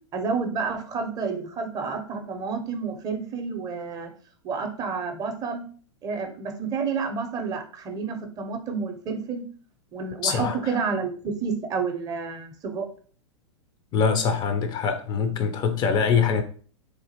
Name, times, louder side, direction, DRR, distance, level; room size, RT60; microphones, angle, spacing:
voice 1, 0.1-4.1 4.4-5.6 6.0-9.4 9.9-11.1 11.4-12.8, right 5 dB, 25° right, 0.5 m, -30 dB
voice 2, 10.2-10.6 13.9-16.4, left 6 dB, 25° left, 0.4 m, -23 dB
3.1 x 2.4 x 2.8 m
figure-of-eight pair, 100°, 16 cm